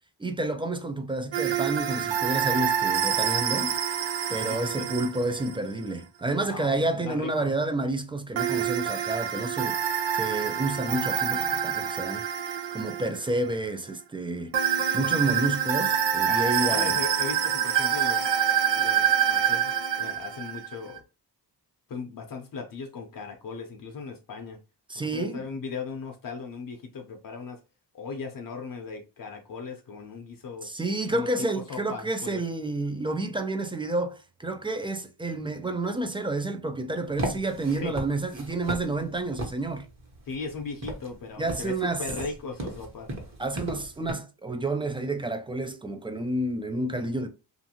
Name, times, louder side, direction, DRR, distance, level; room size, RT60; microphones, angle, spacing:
voice 1, 0.2-3.8 4.3-12.2 12.7-14.5 14.9-17.0 24.9-25.4 30.6-39.9 41.4-42.0 43.4-47.3, right 2 dB, 15° right, 0.3 m, -30 dB
sound 1, 1.3-5.6 8.4-13.5 14.5-21.0, right 9 dB, 85° right, 0.7 m, -26 dB
voice 2, 4.4-4.9 6.4-7.5 16.3-21.0 21.9-24.6 24.9-27.6 27.9-30.7 31.1-32.4 37.8-37.9 40.3-43.1, left 4 dB, 50° left, 0.6 m, -38 dB
sound 2, 37.0-44.1, right 1 dB, 40° right, 1.1 m, -37 dB
2.6 x 2.5 x 2.8 m
cardioid pair, 95°, 42 cm